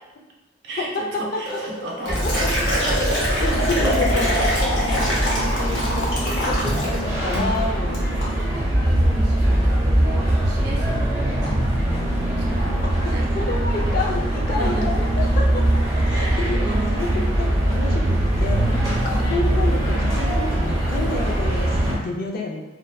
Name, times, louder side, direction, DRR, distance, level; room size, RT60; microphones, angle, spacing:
voice 1, 0.6-3.6 4.2-5.2 7.8-7.9 8.5-12.1 12.4-14.1 14.5-14.9 16.1-17.3 18.6-19.1, right 1 dB, 65° right, -2 dB, 0.5 m, -35 dB
Liquid, 1.5-7.0 7.3-7.6 7.9-8.3, equal, 85° left, 0.7 m, -25 dB
sound 1, 2.1-22.0, right 1 dB, 20° right, 0.7 m, -22 dB
voice 2, 3.4-8.1 13.0-15.6 16.0-18.6 19.1-22.6, left 2 dB, 50° left, 0 dB, 0.4 m, -29 dB
2.6 x 2.1 x 2.2 m, 1.0 s
head